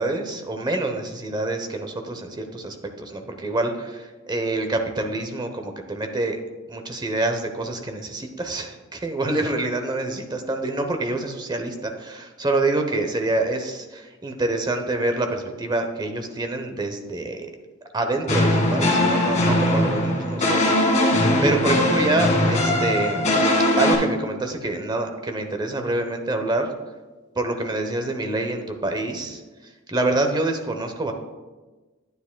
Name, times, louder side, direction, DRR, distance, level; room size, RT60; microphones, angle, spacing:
voice 1, 0.0-6.4 6.7-17.5 17.9-23.3 23.8-26.7 27.4-29.4 29.9-31.1, right 2 dB, 20° right, 5 dB, 0.8 m, -26 dB
sound 1, 18.3-24.0, left 1 dB, 35° left, 2.0 m, -20 dB
9.8 x 9.4 x 2.2 m, 1.2 s
head